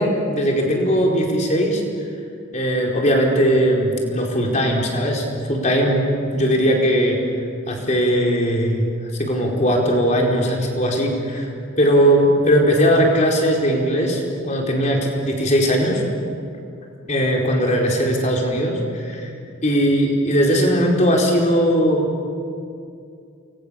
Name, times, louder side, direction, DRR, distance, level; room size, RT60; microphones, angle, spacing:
voice 1, 0.0-1.8 2.5-6.0 6.3-7.2 7.7-8.8 9.2-11.5 11.8-16.0 17.1-19.3 19.6-22.2, equal, 35° left, -1 dB, 4.6 m, -19 dB
29.5 x 23.0 x 7.1 m, 2.4 s
head